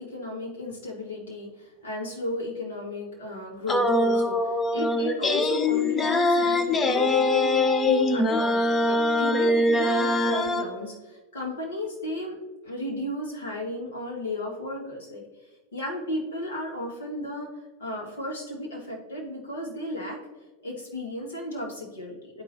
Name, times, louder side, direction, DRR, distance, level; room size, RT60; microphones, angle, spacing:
voice 1, 0.0-12.4 12.6-15.2 15.7-17.5 17.8-20.2 20.6-22.4, left 1 dB, 65° left, -3 dB, 2.1 m, -34 dB
sound 1, 3.7-10.7, left 2 dB, 20° left, 0.6 m, -23 dB
11.5 x 4.3 x 2.8 m, 1.2 s
figure-of-eight pair, 90°, 0 cm